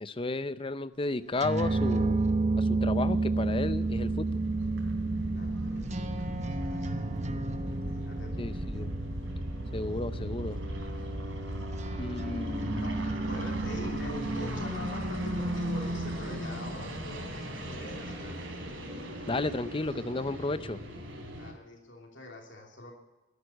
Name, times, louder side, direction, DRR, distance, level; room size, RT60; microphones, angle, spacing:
voice 1, 0.0-2.2 2.6-4.3 8.4-8.9 9.7-10.6 12.0-12.9 19.3-20.8, left 2 dB, 25° left, 13 dB, 0.6 m, -33 dB
sound 1, 1.3-16.4, right 2 dB, 35° right, 0.9 m, -32 dB
sound 2, 2.7-21.5, right 1 dB, 85° right, 3.2 m, -37 dB
voice 2, 5.3-7.0 7.9-8.5 9.8-10.0 12.4-18.4 21.3-22.9, left 1 dB, 65° left, 1 dB, 2.9 m, -45 dB
13.0 x 11.0 x 9.4 m, 1.1 s
head